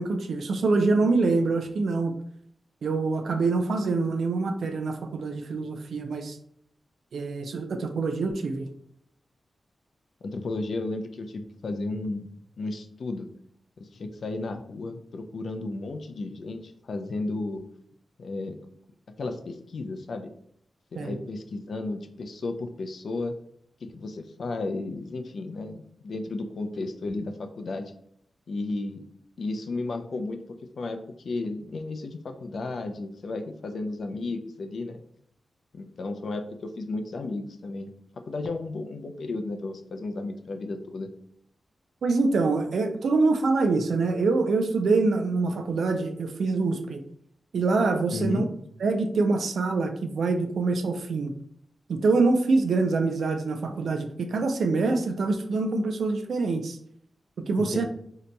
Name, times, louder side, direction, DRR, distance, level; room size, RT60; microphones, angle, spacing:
voice 1, 0.0-2.2 2.8-6.4 7.1-8.7 21.0-21.2 42.0-47.0 47.5-48.5 48.8-51.3 51.9-56.8 57.5-57.9, right 3 dB, 80° right, 6 dB, 0.4 m, -25 dB
voice 2, 10.2-12.3 12.6-13.3 13.8-17.6 18.2-18.6 19.2-20.3 20.9-23.3 23.9-27.9 28.5-29.0 29.4-30.4 30.8-35.0 35.7-37.9 38.3-41.1 48.1-48.5 57.6-57.9, left 2 dB, 65° left, 6 dB, 0.4 m, -33 dB
2.8 x 2.2 x 3.9 m, 0.67 s
wide cardioid pair, 130°, 0 cm